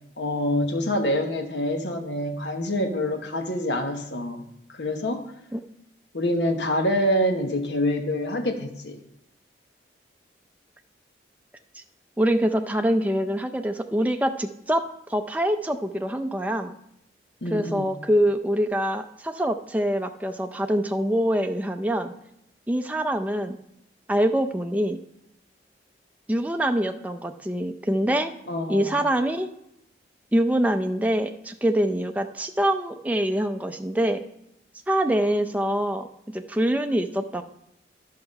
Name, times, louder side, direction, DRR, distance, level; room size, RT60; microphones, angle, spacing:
voice 1, 0.2-4.5 4.7-5.2 6.1-9.0 17.4-17.9 28.5-29.0, left 1 dB, 80° left, 5 dB, 1.1 m, -26 dB
voice 2, 12.2-14.8 15.1-16.7 17.5-22.1 22.7-23.6 24.1-25.0 26.3-28.3 28.7-29.5 30.3-34.2 34.9-37.4, right 1 dB, 10° right, 6 dB, 0.4 m, -24 dB
11.0 x 5.7 x 5.3 m, 0.80 s
head